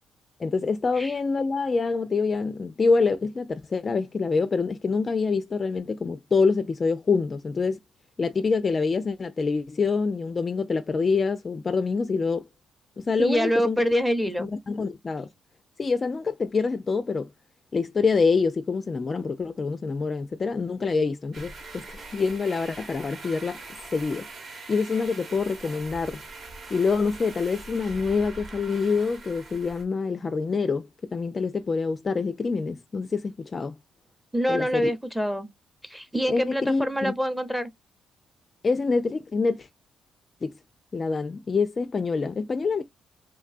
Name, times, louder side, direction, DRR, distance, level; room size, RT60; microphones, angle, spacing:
voice 1, 0.4-7.8 8.2-12.5 13.0-13.8 14.4-15.3 15.8-17.3 17.7-23.6 23.9-24.3 24.7-26.2 26.7-33.8 34.5-34.9 36.3-37.1 38.6-39.7 40.4-40.5 40.9-42.8, left 4 dB, 35° left, 0.3 m, -26 dB
voice 2, 13.2-14.5 34.3-35.5 35.8-37.7, equal, 5° right, 0.7 m, -25 dB
sound 1, 21.3-29.8, right 3 dB, 45° right, 1.0 m, -42 dB
3.3 x 2.2 x 2.4 m
cardioid pair, 90°, 0 cm